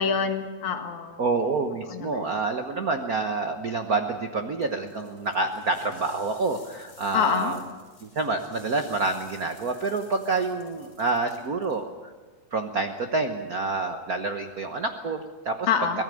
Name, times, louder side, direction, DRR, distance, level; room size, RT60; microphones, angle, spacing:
voice 1, 0.0-1.2 1.9-2.3 7.1-7.5 15.7-16.0, left 6 dB, 75° left, 6 dB, 3.0 m, -26 dB
voice 2, 1.2-7.6 8.0-11.8 12.5-15.7 15.9-16.0, right 3 dB, 75° right, 6 dB, 0.8 m, -28 dB
sound 1, 4.6-11.8, left 2 dB, 40° left, 6.8 m, -53 dB
24.5 x 18.0 x 7.7 m, 1.3 s
omnidirectional pair, 3.4 m